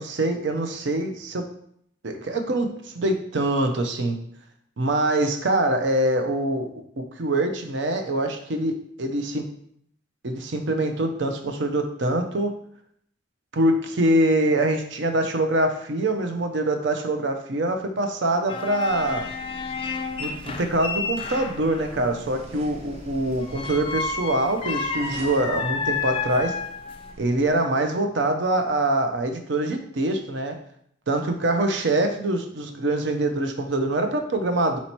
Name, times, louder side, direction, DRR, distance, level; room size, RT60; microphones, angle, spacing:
voice 1, 0.0-1.4 2.0-4.1 4.8-6.7 7.0-9.4 10.2-12.5 13.5-19.3 20.2-26.6 27.2-30.6 31.1-34.8, right 1 dB, 70° right, 6 dB, 0.6 m, -24 dB
sound 1, 18.5-21.9 23.4-27.1, left 4 dB, 30° left, 0.3 m, -31 dB
sound 2, 18.8-27.5, equal, 35° right, 0.6 m, -44 dB
4.2 x 2.8 x 4.4 m, 0.68 s
head